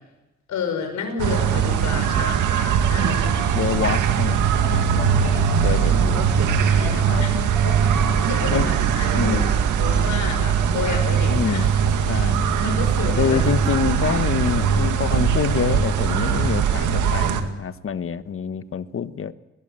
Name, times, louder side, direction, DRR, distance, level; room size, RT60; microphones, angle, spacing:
voice 1, 0.5-3.6 5.2-5.9 6.2-6.3 6.6-11.7 12.0-12.3 12.6-13.4, left 5 dB, 75° left, 4 dB, 6.6 m, -31 dB
sound 1, 1.2-17.4, right 7 dB, 80° right, 2.1 m, -20 dB
sound 2, 3.3-11.7 14.3-14.4, right 3 dB, 5° right, 4.4 m, -40 dB
voice 2, 3.5-5.4 5.6-6.2 7.1-7.2 8.5-8.7 9.1-9.5 11.3-11.7 12.1-12.5 13.2-19.3, left 7 dB, 45° left, 13 dB, 1.2 m, -26 dB
20.5 x 20.0 x 7.5 m, 1.0 s
cardioid pair, 90°, 30 cm